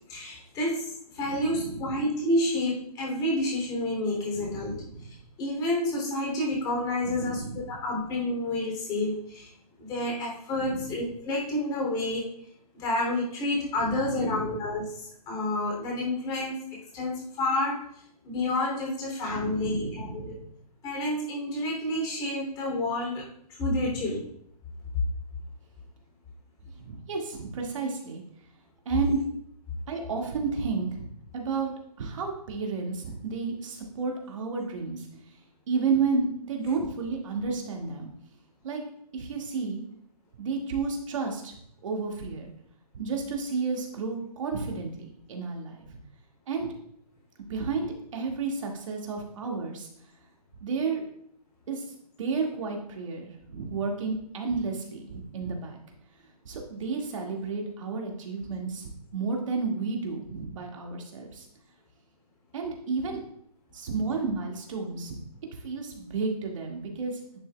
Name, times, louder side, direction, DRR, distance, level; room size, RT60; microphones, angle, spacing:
voice 1, 0.0-9.5 9.8-12.2 12.7-16.6 16.9-20.3 20.8-24.2, left 1 dB, 20° left, -2 dB, 3.0 m, -29 dB
voice 2, 1.4-1.8 4.3-5.1 7.0-7.7 10.6-10.9 13.8-14.5 19.3-20.4 23.8-24.0 26.8-28.2 28.9-29.2 29.9-31.7 32.0-35.1 35.7-38.1 38.6-38.8 39.1-39.8 40.4-41.6 41.8-42.5 42.9-45.8 46.5-46.7 47.5-49.9 50.6-51.1 51.7-51.9 52.2-55.8 56.5-61.5 62.5-63.2 63.7-65.2 65.5-67.2, right 4 dB, 50° right, 1 dB, 2.0 m, -32 dB
10.5 x 6.9 x 2.3 m, 0.69 s
figure-of-eight pair, 140°, 21 cm